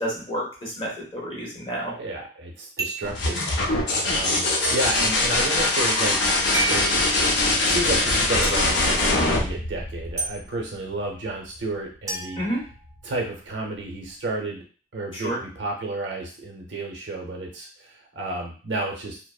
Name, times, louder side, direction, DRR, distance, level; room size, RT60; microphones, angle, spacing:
voice 1, 0.0-1.9 12.4-12.6 15.1-15.4, equal, 30° left, -4 dB, 1.0 m, -29 dB
voice 2, 2.0-7.1 7.7-9.0 9.3-12.4 13.0-14.6 14.9-19.2, right 2 dB, 85° right, 1 dB, 0.7 m, -31 dB
sound 1, 2.8-3.2 4.6-4.8 6.5-6.8 8.4-8.6 10.2-10.3 12.1-13.2, right 4 dB, 20° right, 0.6 m, -30 dB
sound 2, 3.0-10.6 12.4-12.9, left 2 dB, 65° left, 0.6 m, -22 dB
2.7 x 2.0 x 2.3 m, 0.39 s
head